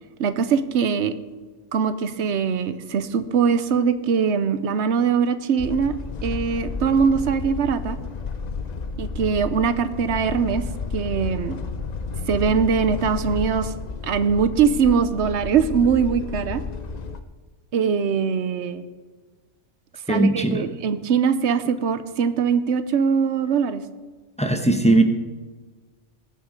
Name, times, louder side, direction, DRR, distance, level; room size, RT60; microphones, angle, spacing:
voice 1, 0.2-1.1 1.7-6.0 6.2-8.0 9.0-10.6 10.9-11.6 12.3-13.7 14.0-16.6 17.7-18.8 20.1-23.8, right 6 dB, 70° right, 12 dB, 1.1 m, -22 dB
sound 1, 5.6-17.2, left 4 dB, 45° left, 0.7 m, -31 dB
voice 2, 20.1-20.7 24.4-25.0, right 2 dB, 5° left, 5 dB, 0.9 m, -18 dB
19.5 x 7.0 x 5.2 m, 1.4 s
omnidirectional pair, 1.2 m